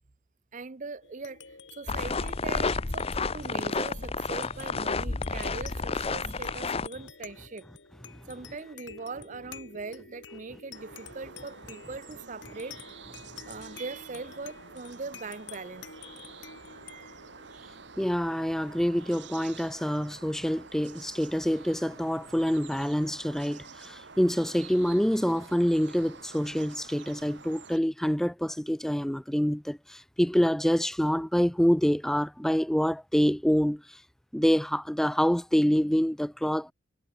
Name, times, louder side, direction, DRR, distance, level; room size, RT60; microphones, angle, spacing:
voice 1, 0.5-1.4 1.7-7.6 8.3-12.8 13.5-16.2 16.7-17.7, right 4 dB, 40° right, 0.7 m, -41 dB
sound 1, 1.0-19.9, left 6 dB, 70° left, 4.4 m, -50 dB
sound 2, 1.9-6.9, left 4 dB, 30° left, 0.8 m, -30 dB
sound 3, 10.7-27.8, right 5 dB, 65° right, 1.9 m, -49 dB
voice 2, 18.0-34.0 34.3-36.7, equal, ahead, 0.4 m, -26 dB
head